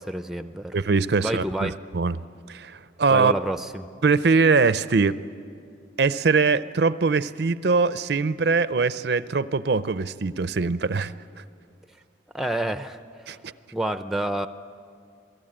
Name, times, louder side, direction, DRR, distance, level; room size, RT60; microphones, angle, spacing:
voice 1, 0.0-0.8 1.2-1.7 3.1-3.9 12.3-13.0 13.7-14.5, right 1 dB, ahead, 10 dB, 0.5 m, -28 dB
voice 2, 0.7-2.2 2.5-3.3 4.0-5.2 6.0-11.1 13.3-13.5, right 4 dB, 60° right, 15 dB, 0.5 m, -22 dB
27.0 x 18.5 x 8.8 m, 2.4 s
head